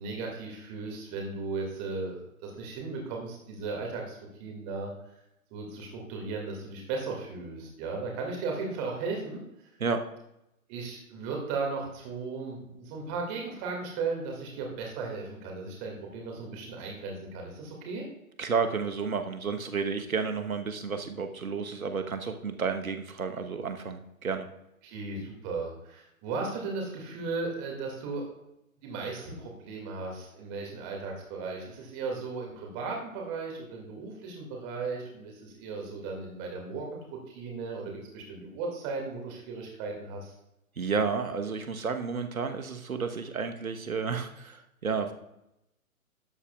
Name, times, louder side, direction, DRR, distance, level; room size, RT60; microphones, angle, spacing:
voice 1, 0.0-4.9 5.5-9.7 10.7-18.0 24.8-28.2 28.8-37.0 37.3-40.3, right 4 dB, 20° right, 0 dB, 2.1 m, -36 dB
voice 2, 18.4-24.5 40.8-45.1, right 5 dB, 70° right, 7 dB, 1.2 m, -31 dB
12.5 x 8.3 x 2.3 m, 0.85 s
figure-of-eight pair, 130°, 43 cm